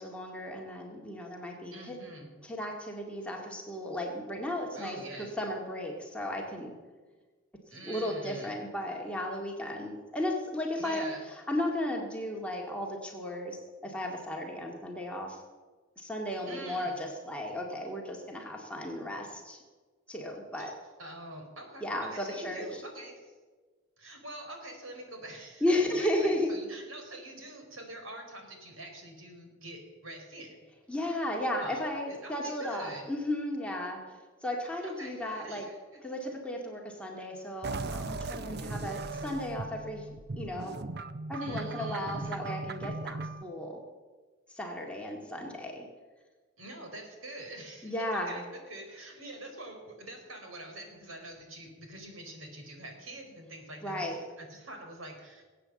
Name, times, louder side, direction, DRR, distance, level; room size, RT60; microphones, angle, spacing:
voice 1, 0.0-2.0 2.4-6.7 7.9-11.1 11.5-15.4 16.0-19.6 20.1-20.7 21.8-22.6 25.6-26.5 30.9-34.0 34.4-35.7 36.0-40.1 40.4-40.8 41.3-43.8 44.5-45.9 47.8-48.4 53.8-54.2, left 1 dB, 5° left, -1 dB, 2.1 m, -34 dB
voice 2, 1.7-2.3 4.7-5.3 7.7-8.5 10.8-11.2 16.4-17.0 20.6-20.7 21.0-23.3 24.0-30.5 31.6-33.1 34.8-36.0 41.4-42.4 46.6-55.4, right 1 dB, 80° right, 3 dB, 4.2 m, -45 dB
sound 1, 37.6-43.4, right 3 dB, 50° right, 0.7 m, -38 dB
19.5 x 8.7 x 7.7 m, 1.4 s
head